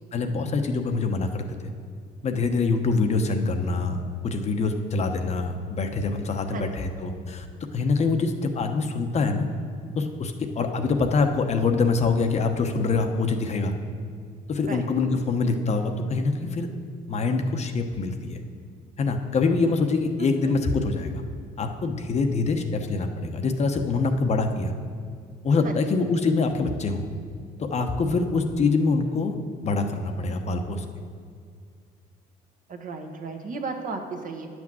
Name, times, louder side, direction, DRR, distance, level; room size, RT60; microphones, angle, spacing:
voice 1, 0.1-1.5 2.2-7.4 7.7-9.5 10.0-13.7 14.5-16.7 17.1-18.4 19.0-21.2 21.6-24.7 25.4-27.0 27.6-29.4 29.6-30.8, left 4 dB, 40° left, 5 dB, 1.0 m, -25 dB
voice 2, 32.7-34.5, right 4 dB, 50° right, 4 dB, 1.4 m, -34 dB
10.0 x 6.1 x 7.6 m, 2.1 s
cardioid pair, 110°, 17 cm